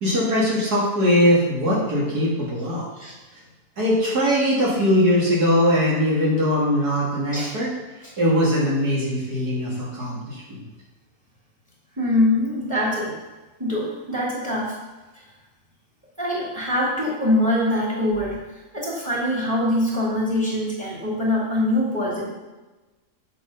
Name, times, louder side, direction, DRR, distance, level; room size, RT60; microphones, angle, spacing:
voice 1, 0.0-2.8 3.8-7.7 8.2-10.6, equal, 70° right, -6 dB, 3.3 m, -21 dB
voice 2, 12.0-13.1 13.6-14.7 16.2-18.4 18.7-22.3, left 1 dB, 10° right, -6 dB, 2.1 m, -23 dB
9.0 x 6.3 x 5.5 m, 1.2 s
omnidirectional pair, 1.7 m